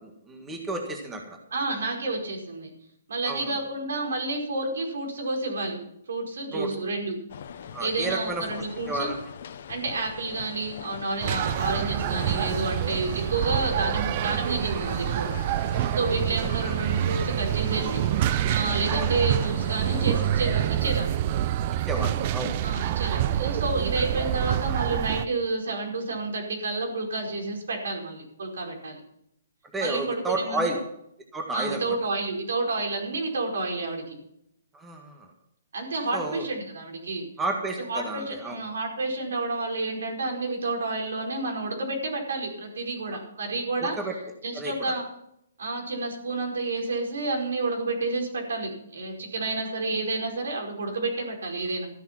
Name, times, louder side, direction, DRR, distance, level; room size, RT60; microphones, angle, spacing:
voice 1, 0.0-1.4 3.2-3.6 6.5-6.7 7.7-8.4 8.9-9.2 16.4-16.5 18.9-19.2 21.9-22.6 29.7-30.8 31.3-31.9 34.7-35.3 36.1-36.5 37.4-38.6 43.8-44.1 44.5-44.9, right 2 dB, 10° right, 2 dB, 1.6 m, -31 dB
voice 2, 1.5-2.7 3.1-5.8 6.1-7.2 7.8-9.1 9.7-15.3 15.9-21.2 22.6-29.0 29.8-30.7 31.5-34.0 35.7-37.2 37.8-43.9 44.4-45.0 45.6-51.9, right 3 dB, 75° right, 1 dB, 5.1 m, -30 dB
sound 1, 7.3-21.0, left 8 dB, 55° left, 1.1 m, -41 dB
sound 2, 11.2-25.3, right 12 dB, 35° right, 0.5 m, -27 dB
13.5 x 10.5 x 6.0 m, 0.76 s
hypercardioid pair, 160°, 0 cm